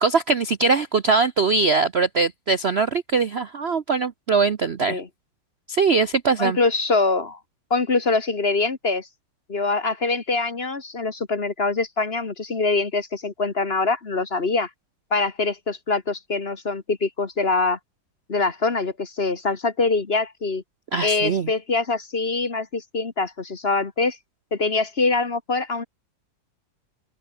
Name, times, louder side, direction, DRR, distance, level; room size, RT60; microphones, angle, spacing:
voice 1, 0.0-5.0 5.7-6.6 20.9-21.5, right 4 dB, 45° right, 0.8 m, -21 dB
voice 2, 6.4-7.4 7.7-9.1 9.5-14.7 15.1-17.8 18.3-20.6 21.0-24.2 24.5-25.8, left 3 dB, 35° left, 1.6 m, -24 dB
omnidirectional pair, 2.0 m